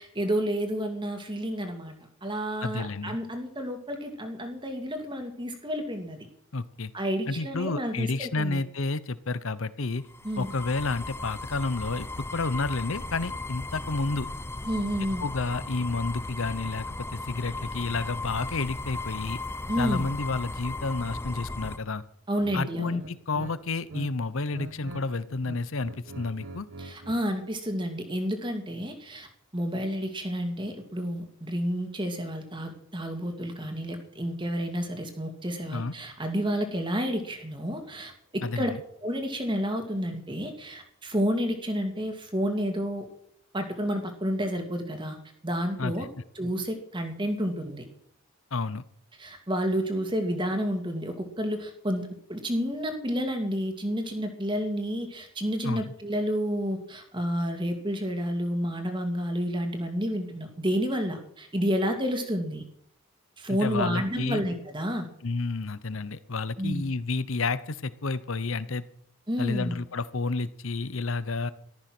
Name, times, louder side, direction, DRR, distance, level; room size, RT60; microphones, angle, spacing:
voice 1, 0.0-6.3 6.9-8.6 10.2-10.5 14.6-15.2 19.7-20.1 22.3-23.0 26.8-29.3 29.5-38.7 39.0-43.1 43.5-45.2 45.4-46.1 46.4-47.9 49.2-62.6 63.4-65.1 66.6-66.8 69.3-69.8, equal, 20° right, 5 dB, 2.2 m, -30 dB
voice 2, 2.6-3.2 6.5-6.9 7.3-10.0 10.4-14.3 15.2-19.4 19.8-22.0 22.5-26.7 35.7-35.9 38.4-38.8 45.8-46.1 48.5-48.8 55.6-55.9 63.6-64.4 65.2-68.8 69.4-71.5, left 3 dB, 65° left, 16 dB, 0.9 m, -30 dB
sound 1, 10.0-21.8, left 2 dB, 10° left, 0.6 m, -36 dB
sound 2, 22.4-22.6 23.0-24.1 24.4-25.0 25.3-27.2, right 2 dB, 70° right, 1.3 m, -42 dB
14.5 x 13.0 x 6.1 m, 0.67 s
head